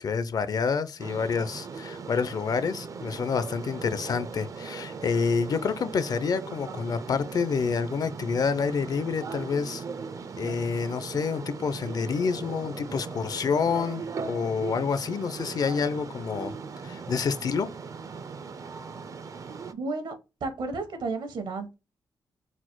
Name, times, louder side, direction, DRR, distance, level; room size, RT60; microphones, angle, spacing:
voice 1, 0.0-9.8 10.4-16.5 16.8-17.7, left 5 dB, 50° left, 0.4 m, -28 dB
sound 1, 1.0-19.7, right 5 dB, 45° right, 0.4 m, -39 dB
voice 2, 19.7-20.1 20.4-21.7, right 3 dB, 70° right, 1.1 m, -32 dB
4.1 x 2.1 x 4.5 m
wide cardioid pair, 115°, 8 cm